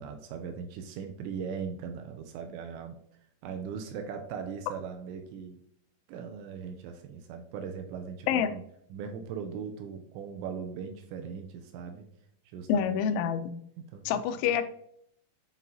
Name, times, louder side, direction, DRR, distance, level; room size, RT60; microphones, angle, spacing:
voice 1, 0.0-3.0 3.4-5.6 6.1-8.6 8.9-12.1 12.5-13.0 13.9-14.2, right 6 dB, 85° right, 5 dB, 2.7 m, -39 dB
voice 2, 12.7-13.5 14.1-14.7, left 8 dB, 85° left, 10 dB, 2.9 m, -27 dB
9.1 x 3.8 x 2.7 m, 0.68 s
omnidirectional pair, 5.4 m